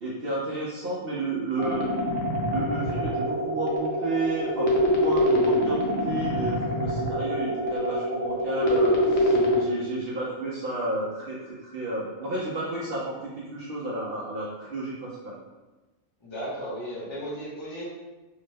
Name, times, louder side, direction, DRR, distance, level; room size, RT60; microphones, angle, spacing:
voice 1, 0.0-1.9 2.5-15.3, right 2 dB, 65° right, -7 dB, 0.6 m, -32 dB
sound 1, 1.6-9.6, equal, 70° left, 0.9 m, -25 dB
voice 2, 16.2-17.8, equal, 25° left, -7 dB, 0.8 m, -35 dB
2.9 x 2.0 x 3.3 m, 1.2 s
omnidirectional pair, 1.5 m